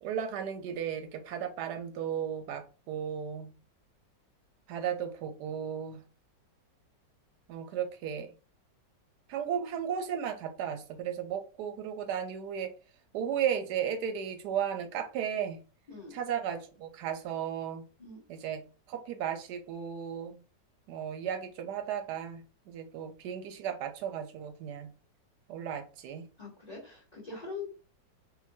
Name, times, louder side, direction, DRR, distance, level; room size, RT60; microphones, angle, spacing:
voice 1, 0.0-3.5 4.7-6.0 7.5-8.3 9.3-12.7 13.1-15.6 16.1-17.8 18.3-20.4 20.9-24.9 25.5-26.3, right 8 dB, 75° right, 7 dB, 1.0 m, -35 dB
voice 2, 26.4-27.7, left 4 dB, 30° left, -2 dB, 0.9 m, -42 dB
3.7 x 2.5 x 2.6 m, 0.34 s
omnidirectional pair, 2.0 m